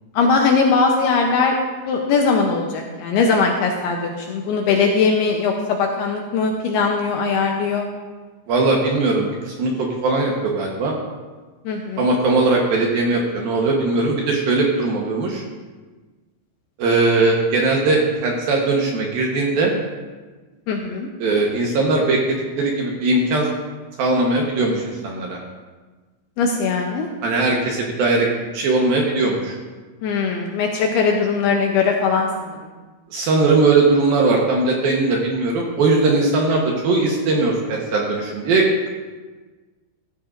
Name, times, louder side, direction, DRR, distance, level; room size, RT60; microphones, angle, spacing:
voice 1, 0.1-1.6 1.9-7.9 11.7-12.1 20.7-21.1 26.4-27.1 30.0-32.7, left 4 dB, 75° left, 1 dB, 2.4 m, -20 dB
voice 2, 8.5-10.9 12.0-15.4 16.8-19.7 21.2-23.5 24.0-25.4 27.2-29.6 33.1-38.9, right 3 dB, 70° right, -1 dB, 2.5 m, -19 dB
15.0 x 13.0 x 2.6 m, 1.3 s
omnidirectional pair, 5.3 m